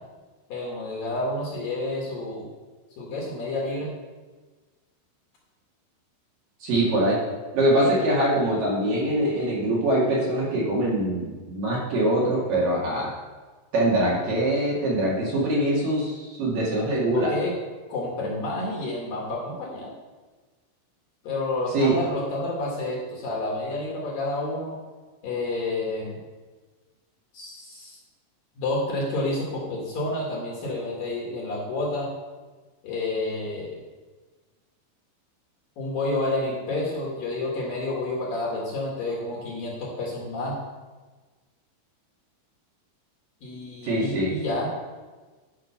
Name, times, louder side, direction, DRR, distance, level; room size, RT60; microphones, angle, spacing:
voice 1, 0.5-2.5 3.0-3.9 7.7-8.0 17.1-17.6 17.9-19.9 21.2-24.8 25.2-26.2 27.3-28.0 28.6-32.1 32.8-33.8 35.8-40.6 43.4-44.7, left 2 dB, 60° left, -3 dB, 2.9 m, -29 dB
voice 2, 6.6-7.2 7.5-13.1 13.7-17.3 21.7-22.0 43.8-44.3, right 1 dB, 55° right, -6 dB, 3.2 m, -23 dB
12.0 x 5.7 x 5.7 m, 1.3 s
omnidirectional pair, 5.5 m